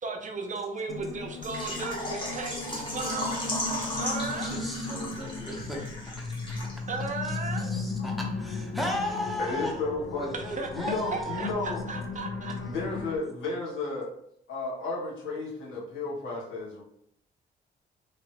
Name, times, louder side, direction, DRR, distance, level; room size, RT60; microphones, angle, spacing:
voice 1, 0.0-3.5 4.0-4.5 6.9-7.7 10.3-12.5, right 4 dB, 40° right, 0.6 m, -36 dB
sound 1, 0.9-13.2, left 3 dB, 55° left, 0.6 m, -36 dB
Water / Liquid, 1.4-7.0 7.3-7.4 7.8-7.9, left 1 dB, 25° left, 1.1 m, -36 dB
voice 2, 4.3-6.6 7.2-9.8 10.2-11.5, left 1 dB, ahead, 0.9 m, -36 dB
voice 3, 9.1-10.3 10.7-11.8 12.6-14.1 14.5-16.8, left 3 dB, 80° left, 1.4 m, -33 dB
3.2 x 2.9 x 2.9 m
cardioid pair, 90°, 20 cm